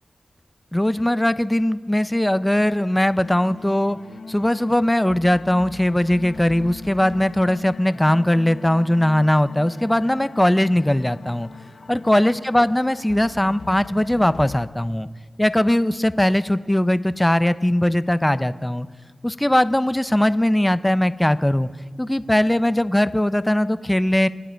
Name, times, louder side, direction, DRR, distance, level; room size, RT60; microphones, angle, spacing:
voice 1, 0.7-4.0 4.3-11.5 11.9-15.1 15.4-18.9 19.2-21.7 22.0-24.3, left 1 dB, 10° left, 14 dB, 0.6 m, -20 dB
sound 1, 3.1-14.7, left 4 dB, 70° left, 0.8 m, -40 dB
27.5 x 9.2 x 4.6 m, 1.5 s
cardioid pair, 45°, 0 cm